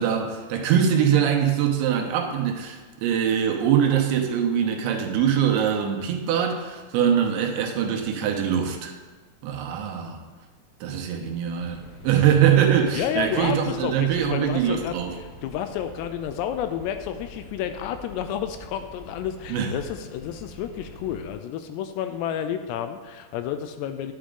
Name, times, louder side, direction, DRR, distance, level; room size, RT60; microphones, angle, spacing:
voice 1, 0.0-8.9 9.4-10.2 10.8-15.1 19.5-19.7, right 8 dB, 90° right, 2 dB, 3.3 m, -23 dB
sound 1, 11.5-21.3, left 1 dB, 50° left, 2.7 m, -45 dB
voice 2, 12.9-24.1, left 9 dB, 80° left, 8 dB, 2.6 m, -30 dB
10.0 x 8.8 x 3.8 m, 1.4 s
omnidirectional pair, 5.2 m